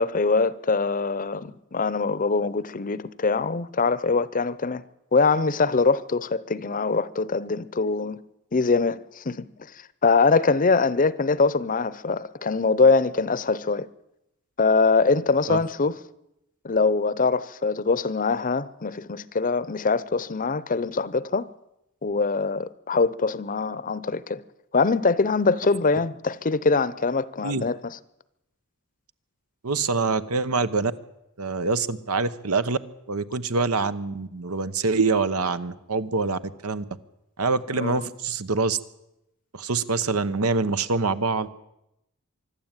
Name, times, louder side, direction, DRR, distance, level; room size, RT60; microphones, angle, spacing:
voice 1, 0.0-4.8 5.1-8.2 8.5-9.5 10.0-13.9 14.6-15.9 16.6-21.5 22.0-24.4 24.7-28.0 37.8-38.1, left 4 dB, 40° left, 0.7 m, -23 dB
voice 2, 29.6-30.9 31.4-32.8 33.1-36.8 37.4-38.8 39.5-41.5, right 4 dB, 90° right, 1.1 m, -25 dB
24.5 x 12.0 x 9.0 m
head